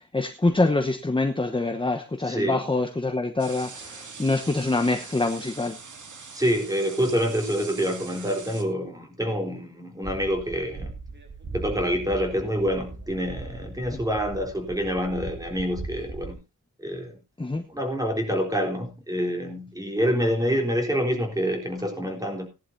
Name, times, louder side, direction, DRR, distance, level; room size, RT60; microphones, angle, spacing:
voice 1, 0.0-5.8 13.9-14.0 17.4-17.6, left 2 dB, 15° left, 1.0 m, -25 dB
voice 2, 2.2-2.6 6.3-10.9 11.5-16.4 16.8-17.2 17.7-22.5, equal, 10° right, 3.8 m, -27 dB
sound 1, 3.4-8.6, right 4 dB, 65° right, 2.6 m, -42 dB
sound 2, 10.0-16.3, right 3 dB, 35° right, 3.5 m, -39 dB
18.5 x 11.0 x 2.7 m
wide cardioid pair, 150°, 33 cm